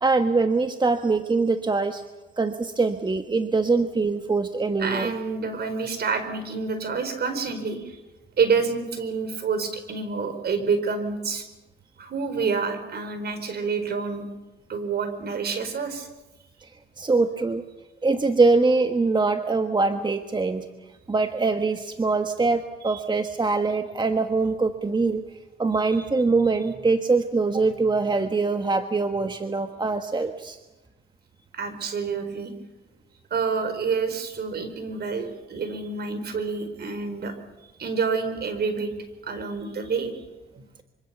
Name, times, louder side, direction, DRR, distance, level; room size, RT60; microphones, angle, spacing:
voice 1, 0.0-2.0 2.4-5.1 16.6-16.7 17.0-17.6 18.0-20.6 21.1-25.2 25.6-30.6, right 3 dB, 20° right, 7 dB, 1.4 m, -23 dB
voice 2, 4.8-8.0 8.4-11.4 12.0-14.2 14.7-16.1 22.8-23.0 31.5-32.5 33.3-37.3 37.8-38.9 39.2-40.2, right 5 dB, 55° right, 8 dB, 4.6 m, -28 dB
25.5 x 25.0 x 7.0 m, 1.1 s
cardioid pair, 90°, 20 cm